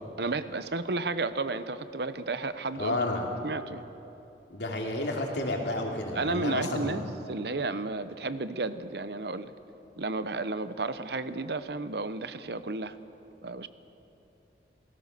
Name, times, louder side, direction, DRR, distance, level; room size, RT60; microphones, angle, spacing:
voice 1, 0.2-3.0 3.4-3.8 6.2-7.0 7.3-9.5 10.0-12.9 13.4-13.7, right 3 dB, 70° right, 13 dB, 0.9 m, -32 dB
voice 2, 2.8-3.3 4.5-7.0, left 1 dB, 80° left, 0 dB, 3.3 m, -31 dB
28.0 x 18.0 x 6.8 m, 2.9 s
head